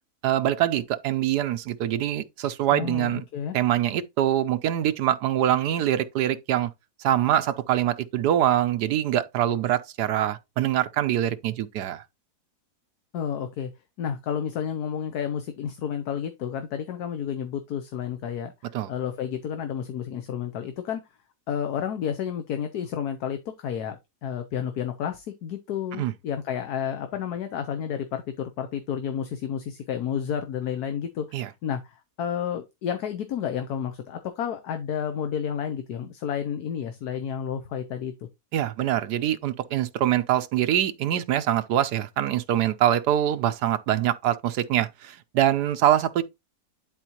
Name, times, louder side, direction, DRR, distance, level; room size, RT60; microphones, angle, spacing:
voice 1, 0.2-3.2 3.5-6.7 7.0-12.0 18.7-18.9 26.0-26.1 31.3-31.5 38.5-46.2, right 11 dB, 80° right, 1.3 m, -24 dB
voice 2, 2.7-3.6 13.1-13.7 14.0-18.5 18.9-21.0 21.5-38.1, left 8 dB, 70° left, 1.4 m, -31 dB
11.0 x 4.2 x 2.9 m
omnidirectional pair, 1.7 m